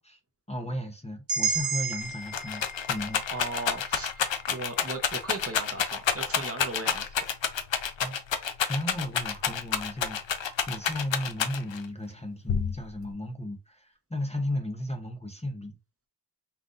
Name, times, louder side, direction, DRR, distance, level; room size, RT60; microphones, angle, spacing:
voice 1, 0.5-3.2 8.0-15.8, left 1 dB, 15° left, 0.8 m, -35 dB
sound 1, 1.3-5.3, right 5 dB, 50° right, 1.2 m, -34 dB
Rattle, 1.5-1.6 1.9-11.9 12.5-13.1, left 7 dB, 80° left, 0.7 m, -29 dB
voice 2, 3.3-4.1 4.5-7.2, right 2 dB, 30° right, 0.9 m, -37 dB
5.7 x 2.5 x 2.6 m
wide cardioid pair, 70°, 44 cm